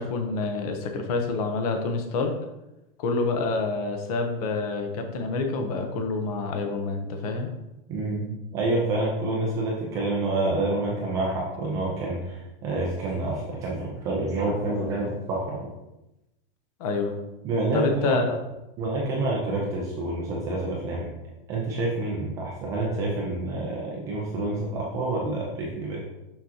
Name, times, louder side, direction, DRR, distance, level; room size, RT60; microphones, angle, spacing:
voice 1, 0.0-2.3 3.0-7.5 16.8-17.1 17.7-18.3, left 3 dB, 40° left, 5 dB, 0.8 m, -27 dB
voice 2, 7.9-8.2 8.5-15.7 17.4-18.3 18.8-21.1 21.5-26.0, right 2 dB, 10° right, -3 dB, 0.4 m, -28 dB
6.3 x 5.9 x 2.8 m, 0.95 s
supercardioid pair, 175°, 29 cm